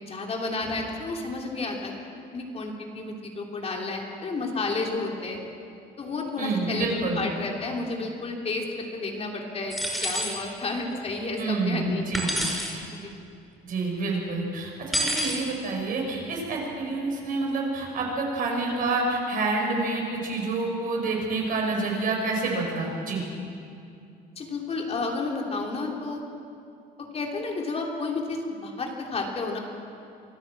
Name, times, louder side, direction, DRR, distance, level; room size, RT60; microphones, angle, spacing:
voice 1, 0.0-1.9 2.3-5.4 6.0-12.1 12.9-13.1 24.4-26.2 27.0-29.6, left 3 dB, 35° left, 0 dB, 3.0 m, -31 dB
voice 2, 6.4-7.2 11.4-12.4 13.6-23.2, right 3 dB, 55° right, 0 dB, 5.4 m, -28 dB
sound 1, 9.7-10.4 12.1-12.7 14.9-15.4, equal, ahead, 5.8 m, -27 dB
24.5 x 14.0 x 7.6 m, 2.5 s
cardioid pair, 110°, 17 cm